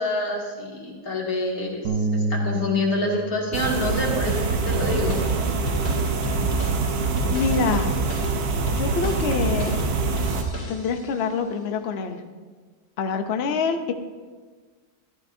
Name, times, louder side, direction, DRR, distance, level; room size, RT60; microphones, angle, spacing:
voice 1, 0.0-5.2, left 2 dB, 50° left, -3 dB, 2.5 m, -27 dB
Bass guitar, 1.8-8.1, right 2 dB, 55° right, 1.0 m, -32 dB
sound 1, 3.5-10.4, right 4 dB, 70° right, 1.5 m, -25 dB
sound 2, 4.7-11.2, right 1 dB, 30° left, 2.7 m, -33 dB
voice 2, 7.3-7.9 8.7-9.8 10.7-12.2 13.0-13.9, left 5 dB, 80° left, 6 dB, 0.5 m, -26 dB
13.5 x 12.5 x 2.6 m, 1.4 s
omnidirectional pair, 2.0 m